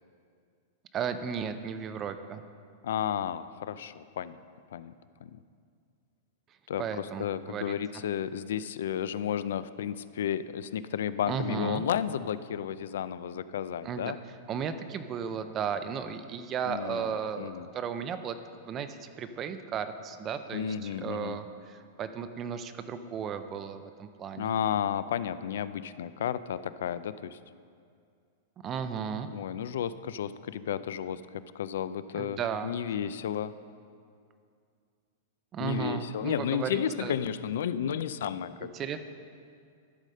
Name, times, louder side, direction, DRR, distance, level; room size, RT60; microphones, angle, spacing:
voice 1, 0.9-2.4 6.8-7.8 11.3-11.8 13.8-14.1 14.5-18.4 18.7-24.5 28.6-29.3 32.2-32.7 35.5-37.1 38.6-39.0, right 7 dB, 20° right, 10 dB, 0.4 m, -35 dB
voice 2, 2.8-4.4 4.7-4.9 5.2-5.4 6.7-14.2 16.7-17.7 20.5-21.4 24.3-27.4 29.3-31.2 31.5-33.5 35.6-38.7, left 9 dB, 70° left, 15 dB, 0.4 m, -32 dB
13.0 x 5.0 x 6.5 m, 2.3 s
supercardioid pair, 180°, 0 cm